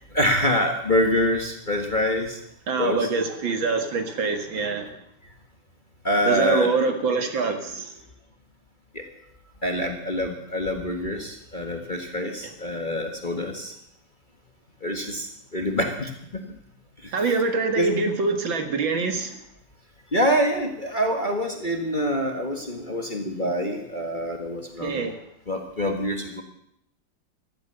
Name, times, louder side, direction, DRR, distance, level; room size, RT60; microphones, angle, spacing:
voice 1, 0.1-2.4 2.8-3.1 6.0-6.7 8.9-9.0 9.6-13.7 14.8-16.4 17.0-17.1 17.8-17.9 20.1-25.0 25.5-26.4, equal, 25° left, 3 dB, 1.5 m, -25 dB
voice 2, 2.7-4.9 6.2-8.0 12.4-12.5 17.1-19.4 24.8-25.2, right 4 dB, 65° right, 6 dB, 2.4 m, -25 dB
15.5 x 12.0 x 6.8 m, 0.74 s
omnidirectional pair, 2.3 m